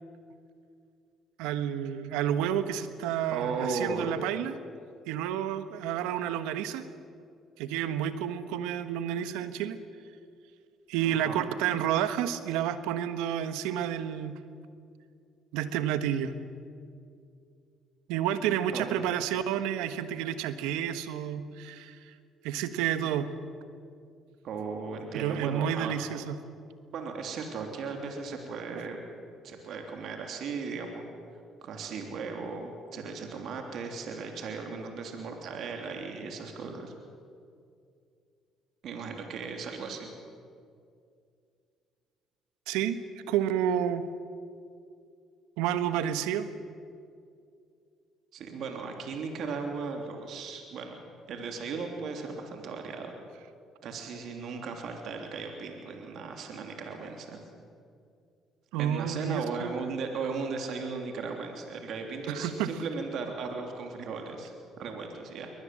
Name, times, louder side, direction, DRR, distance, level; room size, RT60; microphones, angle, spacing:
voice 1, 1.4-4.5 5.1-6.8 7.6-9.8 10.9-14.4 15.5-16.3 18.1-22.1 22.4-23.3 25.1-26.4 42.7-43.0 43.3-44.1 45.6-46.5 58.7-59.7 62.3-62.7, right 10 dB, 85° right, 11 dB, 1.3 m, -30 dB
voice 2, 3.3-4.2 11.0-11.5 18.7-19.0 24.4-25.9 26.9-29.0 29.4-31.0 31.6-36.9 38.8-40.1 48.3-51.0 51.3-53.1 53.8-57.4 58.8-65.5, right 4 dB, 65° right, 3 dB, 3.2 m, -36 dB
23.0 x 19.5 x 7.7 m, 2.4 s
supercardioid pair, 65°, 0 cm